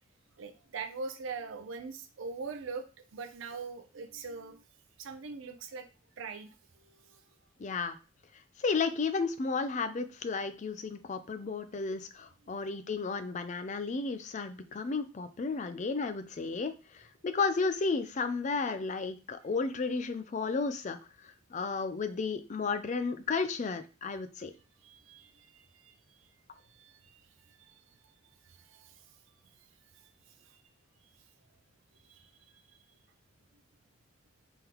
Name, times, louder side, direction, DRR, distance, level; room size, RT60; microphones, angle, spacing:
voice 1, 0.4-2.9 3.1-4.6 5.0-5.9 6.2-6.5 6.8-7.2 12.4-12.6 24.8-26.2 26.6-27.2 27.5-27.8 28.4-29.0 29.9-30.1 30.4-30.6 32.0-32.3, right 4 dB, 75° right, 8 dB, 0.5 m, -43 dB
voice 2, 7.6-8.0 8.6-21.0 21.2-24.5, left 4 dB, 35° left, 10 dB, 0.4 m, -33 dB
3.7 x 3.5 x 2.9 m, 0.33 s
head